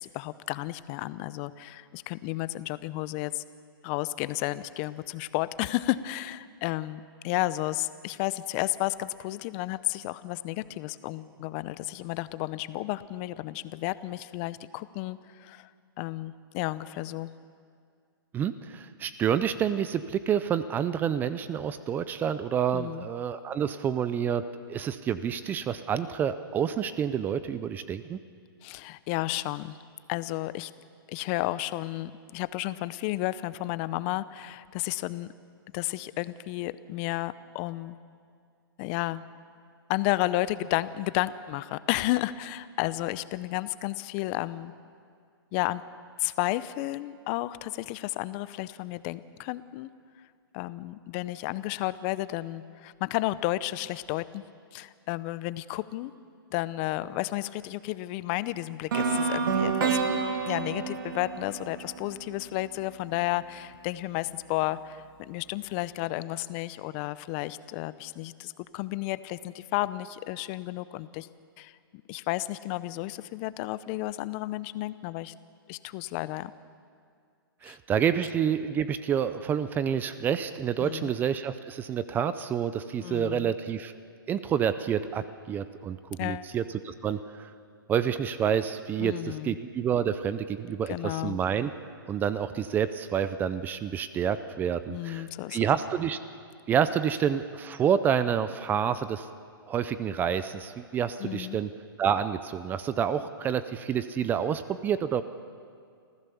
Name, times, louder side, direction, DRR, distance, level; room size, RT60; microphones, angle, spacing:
voice 1, 0.0-3.4 3.8-15.7 16.0-17.3 22.7-23.1 28.6-29.8 30.1-30.7 31.1-35.3 35.7-38.0 38.8-39.2 39.9-44.7 45.5-45.8 46.2-49.9 50.5-54.4 54.7-56.1 56.5-60.0 60.4-71.3 71.6-71.8 72.1-75.3 75.7-76.5 77.6-77.8 80.8-81.1 83.0-83.5 86.2-86.5 89.0-89.6 90.9-91.4 94.9-95.6 101.2-101.6, left 17 dB, 30° left, 16 dB, 0.6 m, -32 dB
voice 2, 18.3-28.2 77.6-83.9 84.3-87.5 87.9-91.7 92.1-96.2 96.7-99.3 99.7-101.7 102.0-105.2, right 8 dB, 15° right, 13 dB, 0.5 m, -28 dB
sound 1, 58.9-62.9, right 5 dB, 60° right, 2.4 m, -29 dB
28.0 x 15.0 x 7.0 m, 2.2 s
hypercardioid pair, 145°, 13 cm